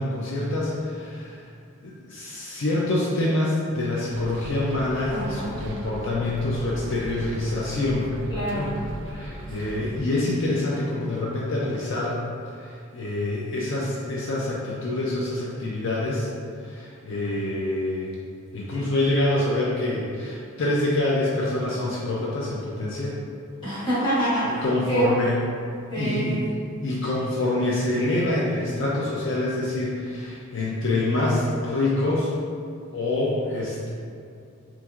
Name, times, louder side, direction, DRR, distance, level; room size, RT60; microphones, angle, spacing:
voice 1, 0.0-1.4 1.8-8.1 8.4-8.7 9.1-12.2 12.6-16.3 16.6-18.1 18.5-23.2 24.6-25.3 26.0-26.4 26.8-32.4 32.9-33.9, left 2 dB, 65° left, -5 dB, 0.5 m, -26 dB
Bus, 4.1-10.0, right 1 dB, 65° right, 0.4 m, -37 dB
voice 2, 5.1-5.7 8.3-8.9 9.6-9.8 23.6-25.2 25.9-26.4, right 1 dB, 25° left, -11 dB, 1.5 m, -27 dB
5.8 x 2.6 x 2.4 m, 2.4 s
head